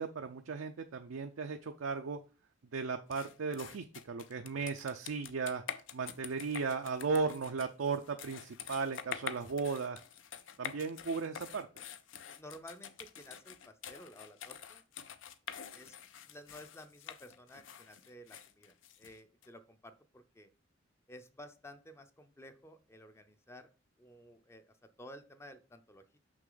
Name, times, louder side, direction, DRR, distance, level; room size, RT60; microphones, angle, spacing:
voice 1, 0.0-2.2 2.7-5.6 5.9-10.0 10.6-11.7, right 4 dB, 85° right, 6 dB, 0.5 m, -36 dB
sound 1, 3.1-19.5, left 8 dB, 70° left, 0.6 m, -47 dB
voice 2, 12.3-14.8 15.7-16.0 16.3-20.5 21.1-23.7 24.0-26.2, left 1 dB, 15° left, 9 dB, 0.5 m, -53 dB
6.1 x 5.8 x 3.9 m, 0.35 s
head